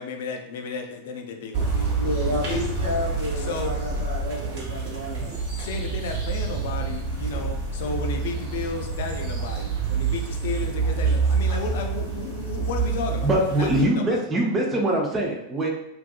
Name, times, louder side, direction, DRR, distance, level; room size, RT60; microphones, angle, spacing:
voice 1, 0.0-2.0 2.2-2.6 3.4-3.7 5.6-14.2, left 4 dB, 55° left, 4 dB, 0.4 m, -33 dB
sound 1, 1.5-13.8, right 4 dB, 50° right, 1.0 m, -27 dB
voice 2, 1.9-5.3, left 1 dB, 80° right, -6 dB, 0.9 m, -30 dB
voice 3, 13.2-15.7, right 1 dB, 20° right, 0 dB, 0.5 m, -23 dB
2.6 x 2.3 x 2.3 m, 0.81 s
figure-of-eight pair, 90°, 0 cm